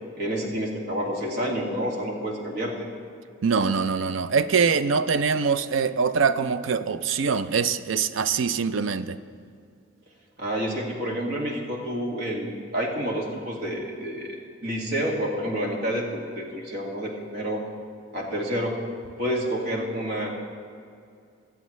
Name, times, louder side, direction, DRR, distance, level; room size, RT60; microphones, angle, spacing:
voice 1, 0.2-2.7 10.4-14.4 14.6-17.6 18.1-18.8 19.2-20.3, equal, 55° right, -1 dB, 1.9 m, -29 dB
voice 2, 3.4-9.2, right 5 dB, 80° right, 13 dB, 0.5 m, -23 dB
22.5 x 8.0 x 3.1 m, 2.3 s
head